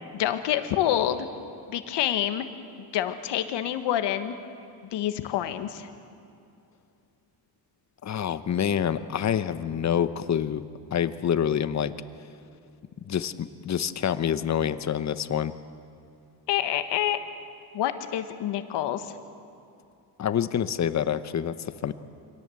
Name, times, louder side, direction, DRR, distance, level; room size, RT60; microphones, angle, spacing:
voice 1, 0.1-1.3 1.7-2.4 2.9-4.4 4.9-5.9 16.5-17.2 17.7-19.2, left 11 dB, 80° left, 9 dB, 1.5 m, -27 dB
voice 2, 8.0-10.6 10.9-11.9 13.1-15.5 20.2-21.9, left 9 dB, 40° left, 13 dB, 0.9 m, -27 dB
24.5 x 17.5 x 7.8 m, 2.5 s
cardioid pair, 95°, 41 cm